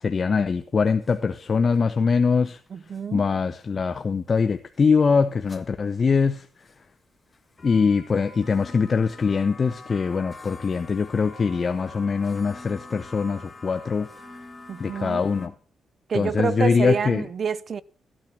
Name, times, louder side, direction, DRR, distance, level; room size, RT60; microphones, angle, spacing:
voice 1, 0.0-2.6 3.1-6.4 7.6-14.1 14.8-15.5 16.1-17.2, left 5 dB, 40° left, 0.7 m, -23 dB
sound 1, 0.8-1.1 1.7-1.8 2.7-3.0 3.6-3.7 4.5-4.9 5.5-5.6 6.4-6.9 7.3-15.5, left 2 dB, 25° left, 1.7 m, -44 dB
voice 2, 2.7-3.3 14.7-15.2 16.1-17.8, right 6 dB, 55° right, 0.6 m, -28 dB
14.0 x 9.0 x 5.8 m
cardioid pair, 95°, 0 cm